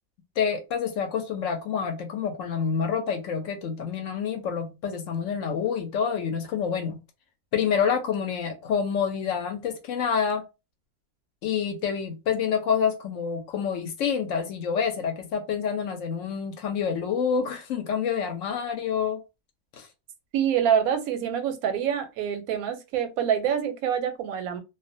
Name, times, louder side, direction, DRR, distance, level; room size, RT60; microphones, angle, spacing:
voice 1, 0.4-7.0 7.5-10.5 11.4-19.2 19.7-19.9, left 7 dB, 70° left, 0.9 m, -27 dB
voice 2, 20.3-24.6, right 8 dB, 90° right, 1.0 m, -26 dB
2.4 x 2.1 x 2.5 m
omnidirectional pair, 1.5 m